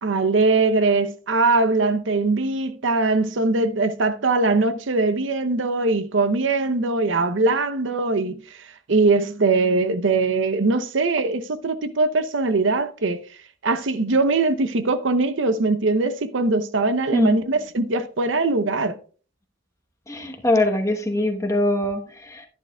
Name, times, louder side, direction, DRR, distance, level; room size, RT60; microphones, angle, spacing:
voice 1, 0.0-8.3 8.9-13.2 13.6-19.0, right 3 dB, 75° right, 0.7 m, -21 dB
voice 2, 20.1-22.5, left 1 dB, 15° left, 1.0 m, -23 dB
11.5 x 10.5 x 2.3 m
head